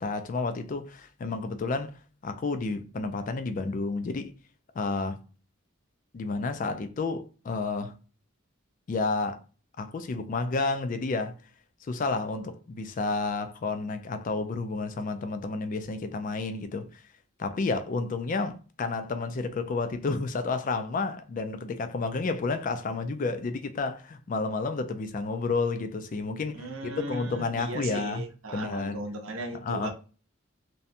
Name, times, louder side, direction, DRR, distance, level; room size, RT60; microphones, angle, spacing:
voice 1, 0.0-2.0 2.2-4.3 4.7-5.2 6.1-7.9 8.9-9.4 9.8-11.3 11.9-17.0 17.4-28.2 28.5-29.1 29.5-29.9, left 3 dB, 40° left, 0.3 m, -31 dB
voice 2, 26.5-29.9, right 2 dB, 85° right, 0.6 m, -37 dB
2.7 x 2.2 x 2.5 m
head